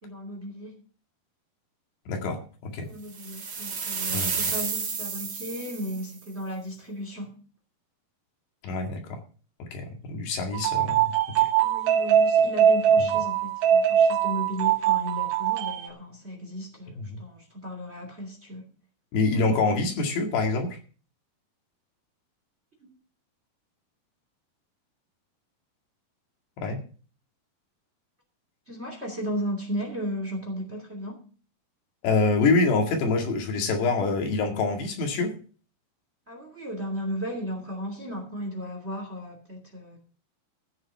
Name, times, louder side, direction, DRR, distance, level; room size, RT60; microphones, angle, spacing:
voice 1, 0.0-0.7 2.8-7.3 11.6-18.7 22.8-22.9 28.7-31.2 36.3-40.0, equal, 20° right, 2 dB, 2.4 m, -35 dB
voice 2, 2.1-2.9 4.1-4.5 8.6-9.2 9.7-11.0 11.4-11.5 13.0-13.1 17.0-17.2 19.1-20.8 26.6-26.8 32.0-35.3, left 3 dB, 85° left, 3 dB, 4.2 m, -26 dB
sound 1, 3.1-6.1, right 5 dB, 40° right, 3.0 m, -31 dB
sound 2, 10.5-15.9, right 8 dB, 70° right, 2.2 m, -22 dB
14.5 x 7.2 x 5.6 m, 0.40 s
omnidirectional pair, 4.7 m